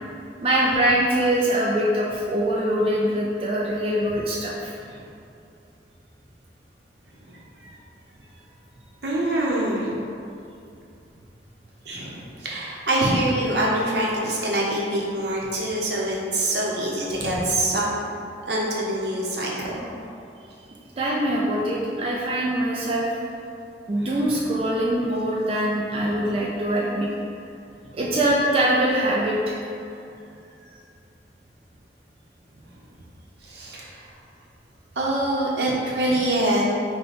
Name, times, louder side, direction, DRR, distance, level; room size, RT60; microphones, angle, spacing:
voice 1, 0.4-4.7 21.0-23.2 23.9-27.1 27.9-29.6, right 1 dB, 30° right, -5 dB, 0.3 m, -23 dB
voice 2, 7.3-7.8 9.0-10.0 11.9-17.9 18.5-19.9 23.9-24.4 25.9-26.2 27.8-28.3 30.6-30.7 33.4-34.1 35.0-36.6, right 1 dB, 70° right, -4 dB, 0.8 m, -25 dB
5.1 x 2.2 x 3.9 m, 2.6 s
head